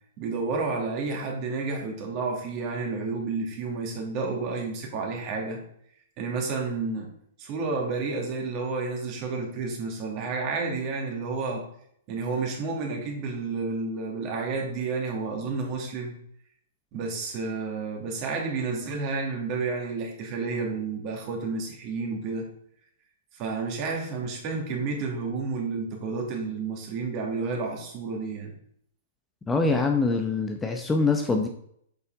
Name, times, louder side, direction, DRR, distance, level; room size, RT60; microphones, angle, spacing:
voice 1, 0.2-5.6 6.2-7.1 7.4-11.6 12.1-16.1 16.9-22.5 23.3-28.5, right 4 dB, 40° right, 0 dB, 2.6 m, -30 dB
voice 2, 29.5-31.5, left 3 dB, 15° left, 4 dB, 0.8 m, -24 dB
8.0 x 5.4 x 4.0 m, 0.67 s
hypercardioid pair, 125°, 0 cm